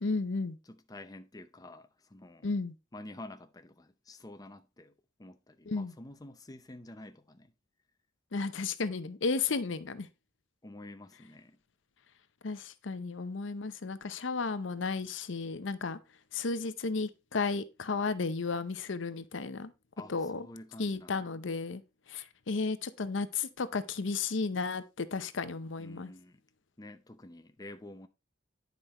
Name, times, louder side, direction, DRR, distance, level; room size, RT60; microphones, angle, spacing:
voice 1, 0.0-0.6 2.4-2.7 5.7-5.9 8.3-10.1 12.4-16.0 16.3-19.7 20.1-20.5 20.8-21.8 22.1-26.1, left 4 dB, 65° left, 0.7 m, -33 dB
voice 2, 0.7-2.5 2.9-4.9 5.2-7.5 10.6-11.6 20.0-21.1 25.8-26.4 26.8-28.1, left 1 dB, 20° left, 0.6 m, -49 dB
10.0 x 5.2 x 4.2 m
head